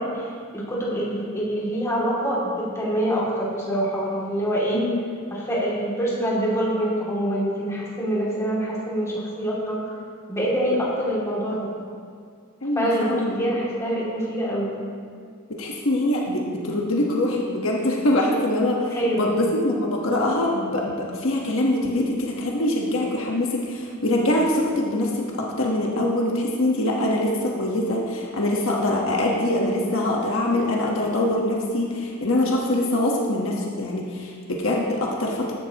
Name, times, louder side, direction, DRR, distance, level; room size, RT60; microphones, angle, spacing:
voice 1, 0.0-4.8 5.3-9.8 10.3-11.7 12.8-14.7 18.9-19.3, equal, 15° left, -6 dB, 2.5 m, -25 dB
voice 2, 12.6-13.3 15.5-35.5, left 1 dB, 65° left, -2 dB, 1.3 m, -24 dB
14.5 x 11.5 x 3.0 m, 2.2 s
head